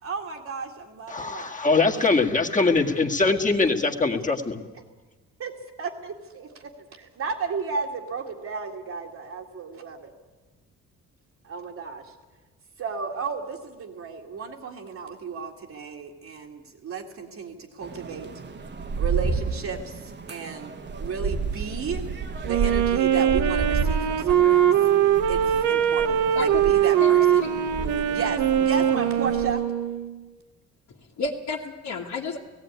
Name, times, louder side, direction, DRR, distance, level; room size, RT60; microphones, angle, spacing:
voice 1, 0.0-1.6 2.0-2.1 3.7-3.8 5.4-10.1 11.4-12.1 12.8-18.3 18.9-22.0 22.5-24.7 25.3-27.5 28.1-29.6, right 5 dB, 60° right, -3 dB, 2.0 m, -34 dB
voice 2, 1.1-4.6, left 3 dB, 25° left, 3 dB, 1.9 m, -22 dB
sound 1, 17.8-29.5, right 5 dB, 35° right, 1.3 m, -31 dB
Wind instrument woodwind instrument, 22.4-30.2, right 9 dB, 80° right, 1.1 m, -21 dB
voice 3, 31.2-32.4, left 4 dB, 65° left, -5 dB, 2.1 m, -31 dB
17.0 x 16.5 x 9.5 m, 1.3 s
cardioid pair, 90°, 30 cm